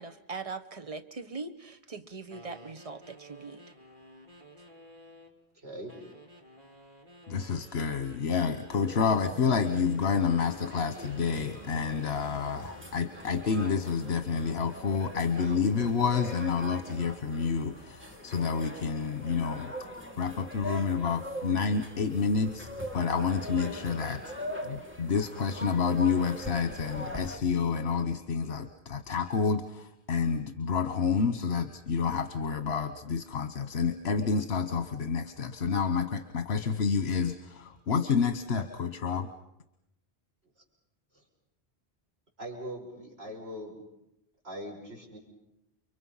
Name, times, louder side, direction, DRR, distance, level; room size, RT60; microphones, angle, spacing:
voice 1, 0.0-3.6, right 4 dB, 35° right, 8 dB, 1.2 m, -41 dB
sound 1, 2.3-5.4 5.9-8.8 9.4-13.0, right 1 dB, 50° right, 2.8 m, -53 dB
voice 2, 5.5-5.9 41.1-41.2 42.4-43.8 44.4-45.2, equal, 80° right, -1 dB, 6.1 m, -41 dB
voice 3, 7.3-19.7 20.2-24.2 24.6-39.3, left 5 dB, 80° left, 8 dB, 1.3 m, -29 dB
sound 2, 8.7-27.4, equal, 10° right, 2.3 m, -42 dB
30.0 x 23.5 x 5.7 m, 0.85 s
omnidirectional pair, 1.1 m